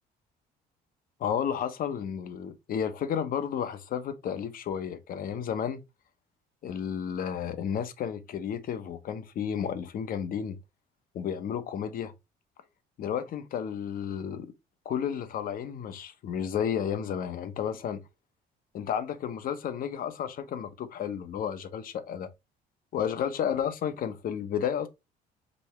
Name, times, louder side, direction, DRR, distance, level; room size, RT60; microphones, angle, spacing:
voice 1, 1.2-5.8 6.6-10.6 11.1-12.1 13.0-14.5 14.8-18.0 18.7-22.3 22.9-24.9, left 8 dB, 55° left, 0.9 m, -32 dB
5.3 x 3.4 x 3.0 m
cardioid pair, 110°, 17 cm